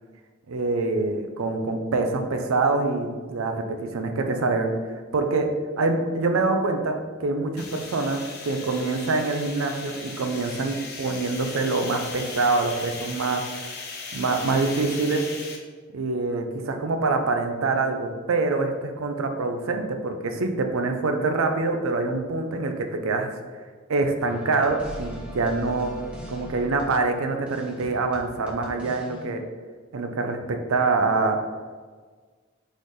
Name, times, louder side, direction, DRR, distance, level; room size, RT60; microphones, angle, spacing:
voice 1, 0.5-3.6 3.9-5.5 5.8-13.4 14.1-15.3 15.9-23.3 23.9-25.9 26.3-29.4 29.9-31.4, right 3 dB, 90° right, 5 dB, 0.5 m, -25 dB
sound 1, 7.6-15.6, left 4 dB, 50° left, 0.7 m, -38 dB
sound 2, 24.2-29.3, right 1 dB, 5° right, 0.9 m, -40 dB
4.0 x 3.2 x 3.9 m, 1.5 s
head